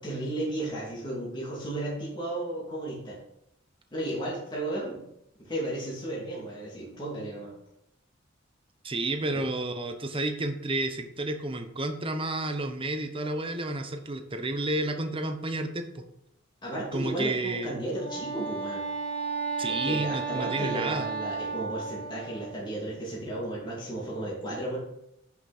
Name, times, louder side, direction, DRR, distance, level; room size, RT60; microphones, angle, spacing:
voice 1, 0.0-3.2 3.9-5.0 5.4-7.5 9.3-9.4 16.6-18.9 19.7-24.8, right 1 dB, 25° left, -6 dB, 2.6 m, -34 dB
voice 2, 8.8-16.0 16.9-17.8 19.6-21.1, right 2 dB, 30° right, 7 dB, 0.9 m, -31 dB
Wind instrument woodwind instrument, 17.9-22.6, right 4 dB, 5° left, 1.9 m, -33 dB
10.0 x 6.0 x 4.3 m, 0.78 s
head